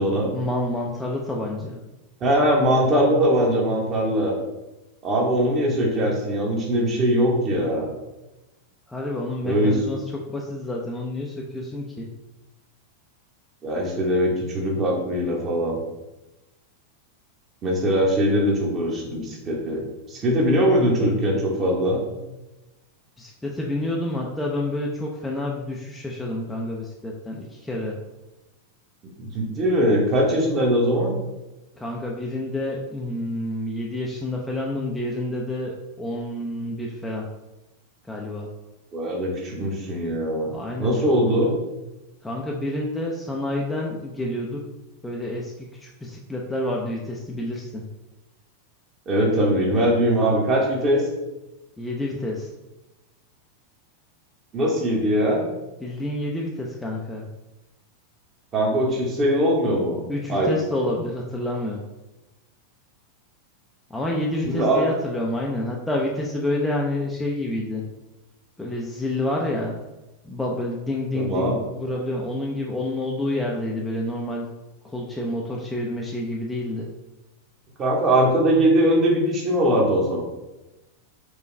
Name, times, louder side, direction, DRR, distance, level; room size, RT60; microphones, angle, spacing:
voice 1, 0.3-1.8 8.9-12.1 23.2-28.0 31.8-37.3 38.1-38.5 40.5-40.9 42.2-44.6 45.0-47.8 51.8-52.5 55.8-57.3 60.1-61.8 63.9-67.8 68.6-69.8 70.2-74.4 74.8-76.9, left 1 dB, 5° left, -2 dB, 0.5 m, -28 dB
voice 2, 2.2-4.3 5.0-7.9 9.4-9.8 13.6-15.8 17.6-22.0 29.2-31.1 38.9-41.5 49.1-51.1 54.5-55.4 58.5-60.0 60.3-60.5 64.4-64.8 71.1-71.6 77.8-80.2, equal, 25° right, -1 dB, 1.0 m, -21 dB
4.8 x 2.3 x 3.2 m, 1.0 s
figure-of-eight pair, 90°, 0 cm